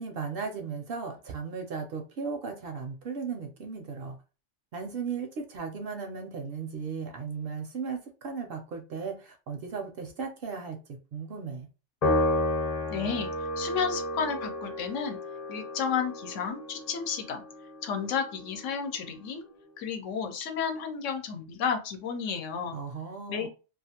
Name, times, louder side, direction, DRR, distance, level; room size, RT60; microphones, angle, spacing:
voice 1, 0.0-4.2 4.7-10.8 11.1-11.7 22.7-23.5, right 5 dB, 60° right, 4 dB, 0.6 m, -36 dB
Piano, 12.0-18.6, left 1 dB, 40° left, 0.7 m, -32 dB
voice 2, 12.9-13.3 13.6-15.2 15.5-17.4 17.8-19.4 19.8-22.8 23.3-23.5, left 6 dB, 85° left, 5 dB, 1.0 m, -32 dB
2.4 x 2.4 x 2.8 m, 0.33 s
omnidirectional pair, 1.3 m